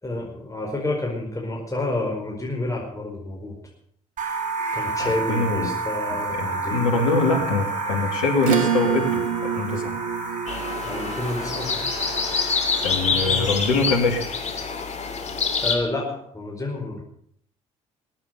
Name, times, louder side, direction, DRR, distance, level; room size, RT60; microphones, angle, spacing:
voice 1, 0.0-3.6 4.7-7.0 10.8-11.8 13.1-13.5 15.6-17.0, left 2 dB, 20° left, -1 dB, 4.9 m, -29 dB
sound 1, 4.2-13.9, right 3 dB, 50° right, 4.8 m, -30 dB
voice 2, 5.0-5.7 6.3-9.2 9.6-10.0 12.8-14.2, left 3 dB, 80° left, 2 dB, 2.5 m, -23 dB
Acoustic guitar / Strum, 8.4-13.3, right 7 dB, 80° right, 1.1 m, -28 dB
sound 2, 10.5-15.7, left 5 dB, 40° left, 3.0 m, -26 dB
20.0 x 8.8 x 6.7 m, 0.64 s
hypercardioid pair, 50°, 17 cm